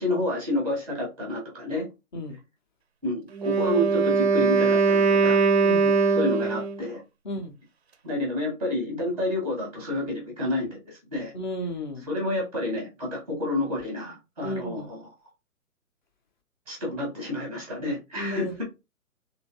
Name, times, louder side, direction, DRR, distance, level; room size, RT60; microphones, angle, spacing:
voice 1, 0.0-1.9 3.0-5.5 6.1-7.0 8.0-11.3 12.1-15.0 16.7-18.6, left 1 dB, ahead, 0.8 m, -29 dB
Wind instrument woodwind instrument, 3.3-6.8, right 5 dB, 45° right, 0.5 m, -21 dB
voice 2, 11.3-12.1 14.4-14.9 18.1-18.6, left 1 dB, 30° left, 0.7 m, -33 dB
3.1 x 2.7 x 2.8 m
figure-of-eight pair, 140°, 45 cm